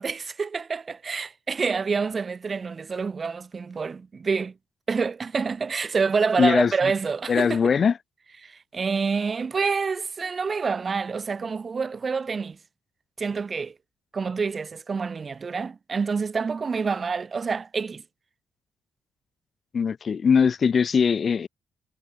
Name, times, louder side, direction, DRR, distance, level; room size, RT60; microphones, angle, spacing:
voice 1, 0.0-4.5 4.9-7.6 8.4-12.6 13.2-13.7 14.1-18.0, right 5 dB, 35° right, 1.9 m, -27 dB
voice 2, 6.4-6.9 7.3-8.0 19.7-21.5, left 6 dB, 45° left, 0.6 m, -21 dB
cardioid pair, 90°, 0 cm